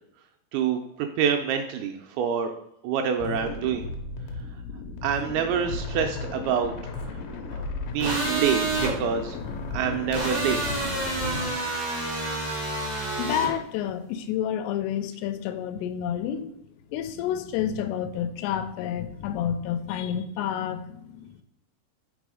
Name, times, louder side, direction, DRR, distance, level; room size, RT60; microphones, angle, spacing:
voice 1, 0.5-2.5 2.8-3.9 5.0-6.7 7.5-7.6 7.9-9.4 9.7-10.9, right 7 dB, 85° right, 5 dB, 2.2 m, -26 dB
sound 1, 3.2-11.5, left 3 dB, 75° left, 2.2 m, -35 dB
sound 2, 8.0-8.9 10.1-13.5, right 2 dB, 35° right, 0.6 m, -28 dB
voice 2, 13.2-16.5 16.9-21.4, left 9 dB, 90° left, 9 dB, 2.7 m, -29 dB
6.0 x 4.1 x 4.8 m, 0.76 s
omnidirectional pair, 4.7 m